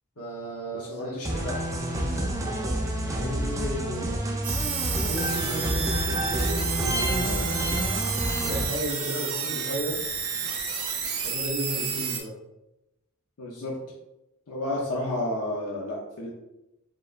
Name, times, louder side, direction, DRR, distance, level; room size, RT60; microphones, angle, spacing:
voice 1, 0.2-1.2 2.0-2.3 3.0-4.2 4.9-7.7 8.4-10.0 11.2-12.3, right 1 dB, 75° left, -4 dB, 1.1 m, -34 dB
voice 2, 0.7-1.5 13.4-13.7 14.5-16.3, left 1 dB, 90° left, -3 dB, 0.7 m, -31 dB
sound 1, 1.3-8.6, right 1 dB, 15° right, 0.4 m, -28 dB
sound 2, 4.4-12.2, right 6 dB, 65° right, 0.7 m, -31 dB
4.7 x 3.2 x 2.5 m, 0.94 s
head